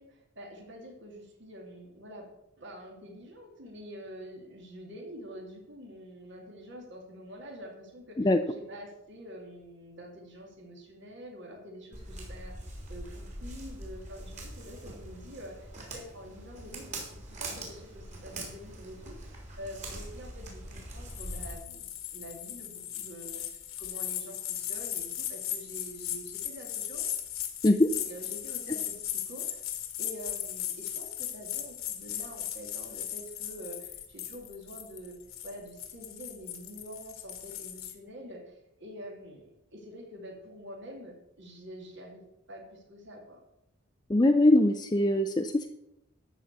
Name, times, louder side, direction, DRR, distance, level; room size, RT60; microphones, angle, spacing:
voice 1, 0.0-2.3 2.6-27.0 28.0-29.7 30.0-35.2 35.4-42.2 42.5-43.4, equal, 60° right, 0 dB, 2.7 m, -46 dB
Walk footsteps, 11.9-21.5, right 1 dB, 35° right, 3.4 m, -43 dB
sound 1, 21.1-37.9, left 11 dB, 90° left, 1.7 m, -37 dB
voice 2, 44.1-45.7, left 1 dB, 20° left, 6 dB, 0.5 m, -22 dB
13.0 x 5.0 x 8.1 m, 0.85 s
head